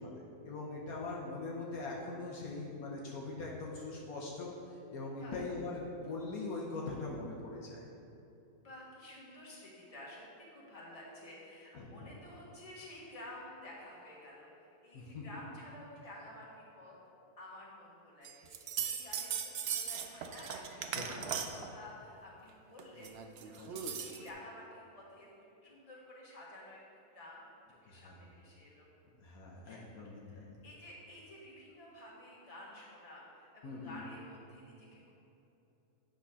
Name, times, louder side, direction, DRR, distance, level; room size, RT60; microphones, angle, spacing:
voice 1, 0.0-4.5 4.9-7.8 11.7-12.1 14.9-15.2 21.0-21.3 23.6-23.7 27.9-28.2 29.2-30.6 33.6-34.0, left 3 dB, 70° left, -3 dB, 1.3 m, -42 dB
voice 2, 8.6-16.9 17.4-25.3 25.6-26.8 27.1-27.4 27.8-28.9 29.5-35.1, left 1 dB, 25° left, -5 dB, 1.4 m, -52 dB
sound 1, 18.2-21.7 22.8-24.3, right 7 dB, 80° right, 0.5 m, -38 dB
8.4 x 3.8 x 5.5 m, 2.9 s
omnidirectional pair, 1.6 m